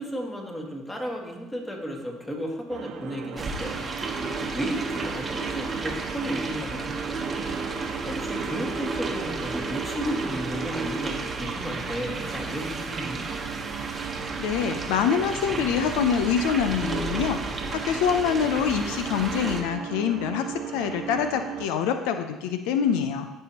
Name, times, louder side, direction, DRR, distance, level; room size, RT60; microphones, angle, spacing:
voice 1, 0.0-3.9 4.4-7.5 8.1-13.2, equal, 15° left, 0 dB, 1.9 m, -34 dB
sound 1, 2.7-21.7, right 8 dB, 65° right, 0.6 m, -38 dB
sound 2, 3.4-19.6, right 3 dB, 30° right, 1.1 m, -32 dB
voice 2, 14.4-20.4 20.7-23.3, left 7 dB, 85° left, 8 dB, 0.5 m, -25 dB
13.5 x 5.5 x 2.9 m, 1.1 s
supercardioid pair, 95°, 0 cm